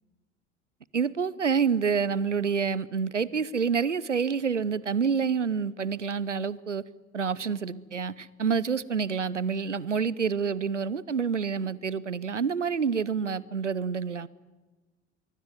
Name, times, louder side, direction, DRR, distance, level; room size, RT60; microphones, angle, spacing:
voice 1, 0.9-6.8 7.1-14.3, right 6 dB, 85° right, 21 dB, 0.8 m, -28 dB
24.0 x 23.5 x 9.4 m, 1.2 s
figure-of-eight pair, 60°, 35 cm